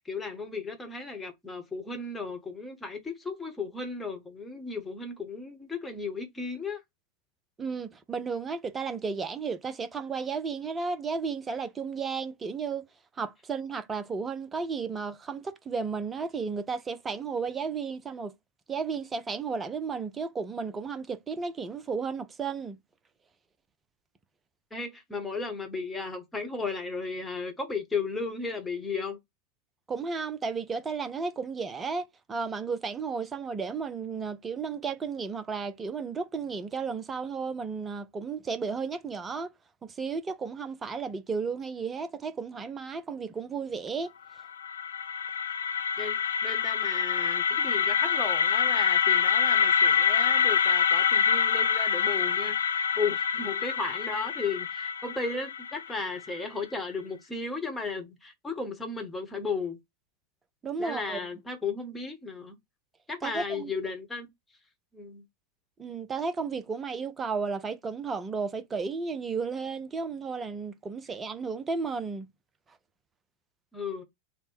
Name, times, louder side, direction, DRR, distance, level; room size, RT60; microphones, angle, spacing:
voice 1, 0.0-6.8 24.7-29.2 46.0-59.8 60.8-62.6 63.1-64.3 64.9-65.2 73.7-74.0, left 4 dB, 10° left, 1.1 m, -35 dB
voice 2, 7.6-12.9 13.2-18.3 18.7-22.8 29.9-39.5 39.8-44.1 60.6-61.2 63.2-63.7 65.8-72.3, right 5 dB, 15° right, 0.6 m, -33 dB
sound 1, 44.4-56.3, left 7 dB, 70° left, 0.3 m, -26 dB
3.5 x 2.1 x 4.2 m
figure-of-eight pair, 90°, 0 cm